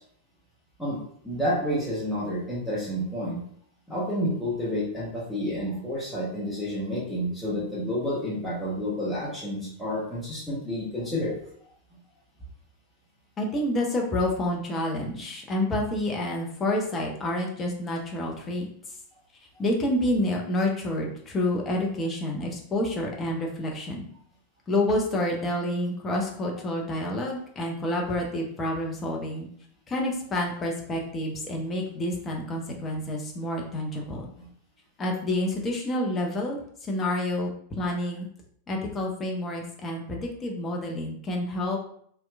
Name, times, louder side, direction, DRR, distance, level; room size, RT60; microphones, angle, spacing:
voice 1, 1.2-3.4 3.9-11.3 34.4-34.5, equal, 5° left, -8 dB, 1.0 m, -29 dB
voice 2, 13.4-18.7 19.6-24.1 24.7-29.5 29.9-34.3 35.0-38.3 38.7-41.8, left 1 dB, 20° left, 0 dB, 0.6 m, -28 dB
2.8 x 2.1 x 2.2 m, 0.62 s
figure-of-eight pair, 90°, 0 cm